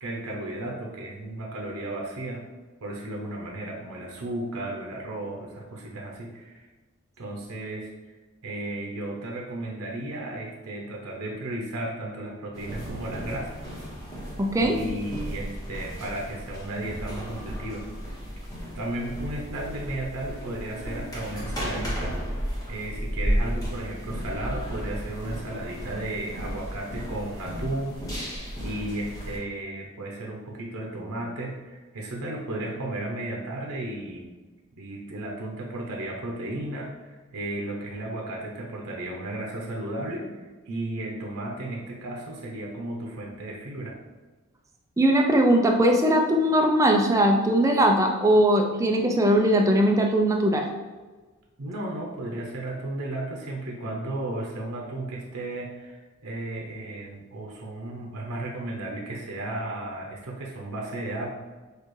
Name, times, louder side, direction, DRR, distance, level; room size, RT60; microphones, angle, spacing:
voice 1, 0.0-2.4 2.8-6.6 7.2-7.9 8.4-13.7 14.6-17.8 18.7-22.2 22.7-34.3 34.8-44.0 51.6-61.3, right 1 dB, 90° right, -1 dB, 0.8 m, -34 dB
sound 1, 12.5-29.4, equal, 15° left, 1.0 m, -34 dB
voice 2, 14.4-14.8 45.0-50.7, right 1 dB, 15° right, 2 dB, 0.4 m, -20 dB
6.5 x 2.4 x 3.1 m, 1.3 s
head